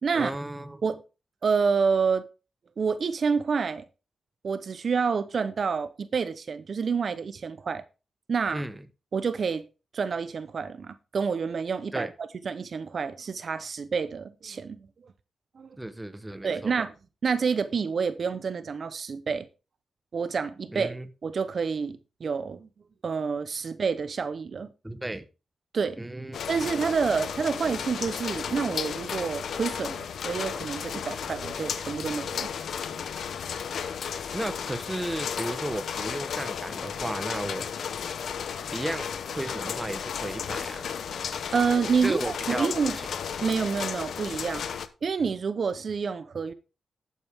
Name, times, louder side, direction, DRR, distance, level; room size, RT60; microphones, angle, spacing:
voice 1, 0.1-0.8 8.5-8.8 11.9-12.1 15.8-16.7 20.7-21.1 24.8-25.3 26.0-26.4 34.3-37.7 38.7-40.9 42.0-43.1, right 1 dB, 10° right, 1.1 m, -34 dB
voice 2, 1.4-2.2 2.8-3.9 4.4-7.8 8.3-8.6 9.1-9.7 9.9-12.1 12.4-14.8 15.6-15.8 16.4-16.9 17.2-19.5 20.1-20.9 21.2-22.7 23.0-24.7 25.7-26.0 26.5-32.5 41.5-43.0 43.4-44.6 45.0-46.5, right 5 dB, 55° right, 0.8 m, -28 dB
sound 1, 26.3-44.9, left 7 dB, 75° left, 0.9 m, -34 dB
12.0 x 8.6 x 3.6 m
cardioid pair, 105°, 0 cm